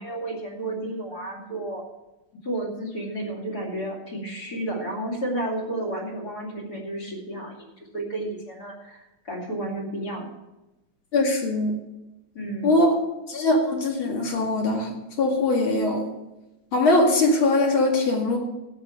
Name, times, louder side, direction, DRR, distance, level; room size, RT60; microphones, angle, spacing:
voice 1, 0.0-1.8 2.4-10.3 12.3-12.7, right 1 dB, 45° left, 0 dB, 3.2 m, -32 dB
voice 2, 11.1-11.7 12.6-13.0 13.3-14.9 15.2-16.0 16.7-18.4, left 2 dB, 65° left, 1 dB, 3.0 m, -21 dB
13.0 x 9.1 x 5.9 m, 1.0 s
omnidirectional pair, 2.4 m